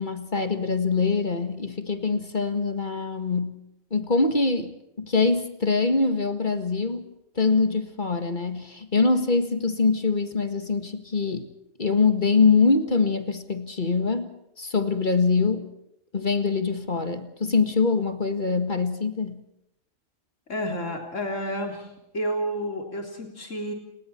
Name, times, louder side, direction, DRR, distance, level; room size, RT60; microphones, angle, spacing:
voice 1, 0.0-3.6 3.9-4.7 5.0-7.1 7.4-11.5 11.8-14.3 14.6-15.7 16.1-19.4, left 4 dB, 40° left, 8 dB, 1.9 m, -24 dB
voice 2, 20.5-23.7, equal, 70° left, 3 dB, 3.9 m, -30 dB
29.5 x 20.5 x 4.5 m, 0.83 s
omnidirectional pair, 1.3 m